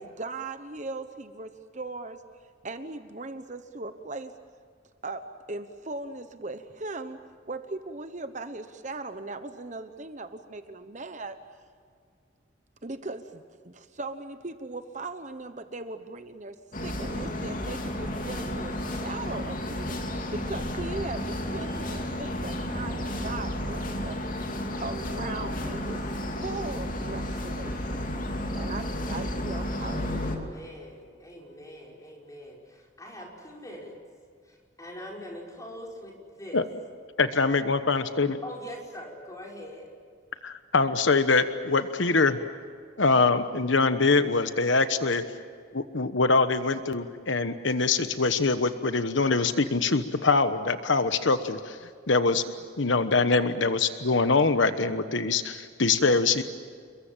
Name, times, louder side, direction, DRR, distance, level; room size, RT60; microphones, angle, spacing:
voice 1, 0.0-2.2 2.6-4.3 5.0-5.2 5.5-7.2 7.5-11.4 12.8-16.6 16.8-20.0 20.3-24.2 24.8-26.1 26.4-28.0 28.5-30.5, right 3 dB, 35° right, 9 dB, 1.1 m, -38 dB
sound 1, 16.7-30.4, left 1 dB, 45° left, 2.8 m, -32 dB
voice 2, 30.1-34.0 34.5-36.7 38.4-39.9, equal, 15° left, -1 dB, 5.5 m, -43 dB
voice 3, 37.2-38.4 40.4-42.4 43.0-45.2 45.7-51.8 52.1-52.4 52.8-56.4, left 3 dB, 70° left, 10 dB, 1.2 m, -24 dB
29.5 x 22.5 x 7.4 m, 2.1 s
head